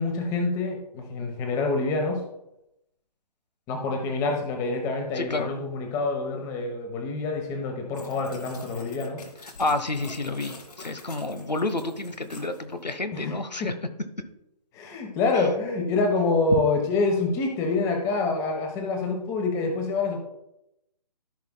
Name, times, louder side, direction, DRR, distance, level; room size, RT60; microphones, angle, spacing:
voice 1, 0.0-2.2 3.7-9.2 13.1-13.3 13.6-13.7 14.7-20.2, left 3 dB, 15° left, 3 dB, 1.0 m, -26 dB
voice 2, 5.2-5.5 9.6-13.7 15.3-15.5, left 2 dB, 90° left, 10 dB, 0.9 m, -29 dB
sound 1, 7.9-12.9, left 3 dB, 65° left, 2.0 m, -45 dB
14.5 x 5.7 x 2.2 m, 0.85 s
figure-of-eight pair, 140°, 21 cm